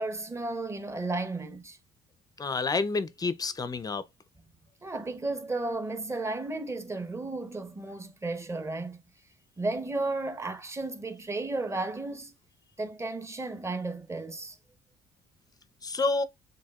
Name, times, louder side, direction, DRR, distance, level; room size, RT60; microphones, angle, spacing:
voice 1, 0.0-1.8 4.8-9.0 9.6-12.3 12.8-14.6, right 2 dB, 15° right, 0.8 m, -33 dB
voice 2, 2.4-4.0 15.8-16.2, left 3 dB, 20° left, 0.5 m, -29 dB
7.2 x 2.7 x 2.3 m
cardioid pair, 110°, 17 cm